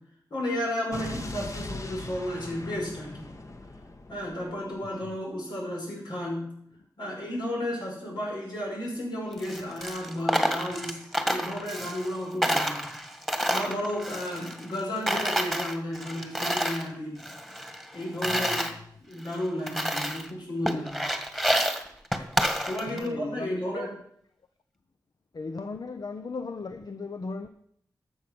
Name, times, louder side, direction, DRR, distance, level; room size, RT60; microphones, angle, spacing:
voice 1, 0.3-3.3 4.1-6.5 7.0-11.0 11.2-12.9 13.5-17.2 17.9-18.6 19.0-21.0 22.6-23.9, left 1 dB, 85° left, 5.5 m, -33 dB
Explosion, 0.9-5.0, left 2 dB, 45° left, 1.3 m, -40 dB
Coin (dropping), 9.3-12.2 12.4-14.8 15.1-16.9 17.2-18.7 19.3-19.4 19.7-20.3 20.7-23.1, equal, 5° left, 1.6 m, -29 dB
voice 2, 18.2-18.9 22.8-24.0 25.3-27.5, left 3 dB, 65° left, 0.7 m, -37 dB
13.0 x 7.2 x 6.1 m
cardioid pair, 50°, 7 cm